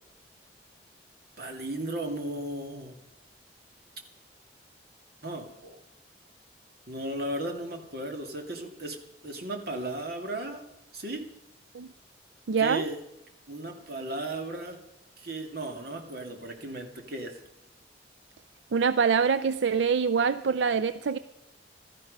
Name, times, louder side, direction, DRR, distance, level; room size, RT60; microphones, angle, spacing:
voice 1, 1.4-3.0 5.2-5.8 6.9-9.0 9.2-10.6 10.9-11.2 12.6-13.0 13.5-14.8 15.2-17.3, right 1 dB, 60° right, 4 dB, 2.5 m, -35 dB
voice 2, 12.5-12.8 18.7-21.2, right 6 dB, 85° right, 13 dB, 0.5 m, -24 dB
16.5 x 13.0 x 5.4 m, 0.93 s
head